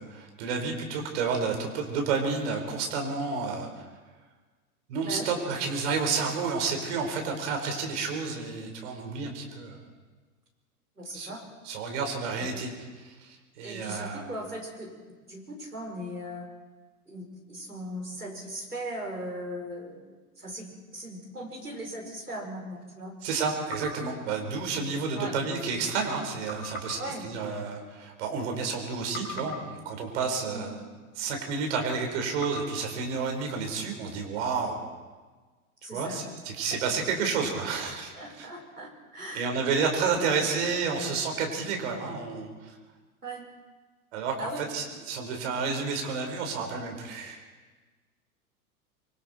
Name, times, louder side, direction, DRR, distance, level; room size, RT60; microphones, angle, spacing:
voice 1, 0.0-3.8 4.9-9.8 11.1-11.3 11.6-12.7 13.0-14.2 23.2-30.7 31.1-34.8 35.9-38.5 39.3-42.7 44.1-47.4, right 5 dB, 50° right, 3 dB, 4.8 m, -30 dB
voice 2, 5.0-5.3 11.0-11.4 12.4-12.5 13.6-14.9 15.3-16.5 17.1-23.1 25.1-25.3 27.0-27.2 30.4-30.7 35.8-36.2 38.2-39.5 43.2-43.5 44.4-44.6, right 1 dB, 85° right, 1 dB, 5.2 m, -38 dB
sound 1, 23.7-25.1 26.5-28.8 29.1-31.4 32.4-34.3, left 1 dB, 25° left, 6.2 m, -44 dB
25.0 x 24.0 x 4.5 m, 1.3 s
figure-of-eight pair, 95°, 45 cm